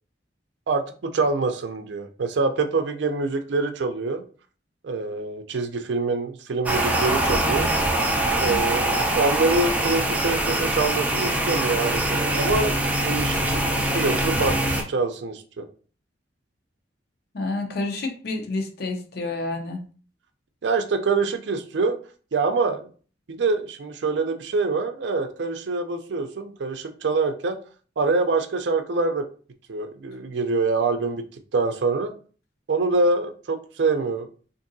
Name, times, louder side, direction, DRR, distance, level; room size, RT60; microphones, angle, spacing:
voice 1, 0.7-4.2 4.8-7.7 8.4-12.8 13.0-13.6 13.9-15.6 20.6-22.0 22.3-22.9 23.3-27.6 28.0-29.2 29.7-31.2 31.5-32.1 32.7-34.3, right 3 dB, 75° right, 7 dB, 0.5 m, -25 dB
sound 1, 6.7-14.8, right 1 dB, 10° right, 0.5 m, -23 dB
voice 2, 8.4-8.8 17.3-19.8, left 2 dB, 60° left, 4 dB, 0.7 m, -29 dB
3.7 x 2.6 x 2.6 m, 0.40 s
head